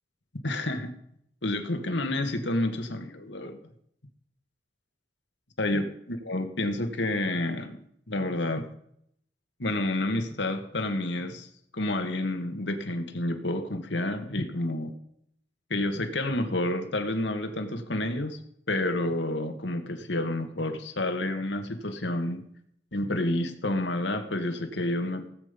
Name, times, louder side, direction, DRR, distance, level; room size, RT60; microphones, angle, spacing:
voice 1, 0.4-0.9 1.4-3.6 5.6-7.8 8.1-8.7 9.6-11.5 11.7-14.9 15.7-18.4 18.7-22.4 22.9-25.3, left 1 dB, 85° left, 6 dB, 2.0 m, -29 dB
18.0 x 8.8 x 5.3 m, 0.71 s
head